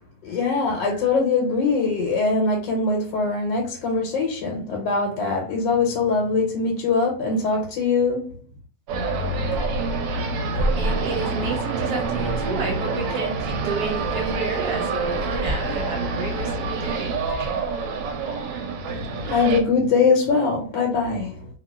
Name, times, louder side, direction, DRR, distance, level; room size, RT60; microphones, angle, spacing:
voice 1, 0.2-8.3 19.0-21.5, left 4 dB, 85° left, 0 dB, 1.4 m, -22 dB
sound 1, 8.9-19.6, right 4 dB, 85° right, 1.3 m, -27 dB
sound 2, 9.5-10.3 10.5-11.6 12.0-12.8 13.4-18.4, equal, 50° left, 1.0 m, -32 dB
voice 2, 10.8-17.1, right 3 dB, 70° right, 1 dB, 1.1 m, -30 dB
2.8 x 2.6 x 2.2 m, 0.41 s
omnidirectional pair, 2.0 m